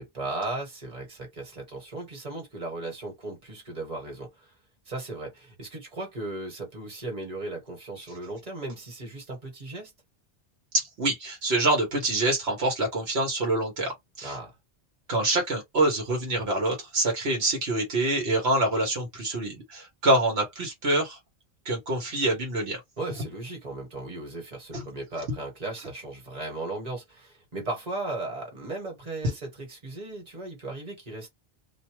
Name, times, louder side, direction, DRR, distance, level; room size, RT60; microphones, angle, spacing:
voice 1, 0.0-4.5 4.9-9.9 14.2-14.5 23.0-31.3, right 2 dB, 40° right, 1.4 m, -36 dB
voice 2, 10.7-14.4 15.1-21.2 21.6-22.8 24.7-24.8 29.2-29.3, right 2 dB, 75° right, 1.3 m, -26 dB
2.6 x 2.2 x 3.0 m
omnidirectional pair, 1.1 m